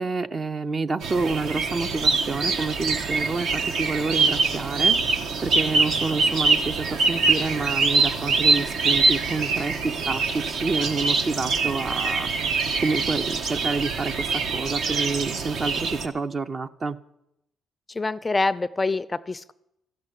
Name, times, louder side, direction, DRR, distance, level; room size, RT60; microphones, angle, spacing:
voice 1, 0.0-12.3 12.8-17.0, right 4 dB, 40° right, 10 dB, 0.6 m, -28 dB
sound 1, 1.0-16.1, right 4 dB, 70° right, 1.2 m, -24 dB
voice 2, 17.9-19.5, left 3 dB, 20° left, 16 dB, 0.4 m, -26 dB
13.5 x 6.7 x 9.9 m, 0.83 s
cardioid pair, 90°, 0 cm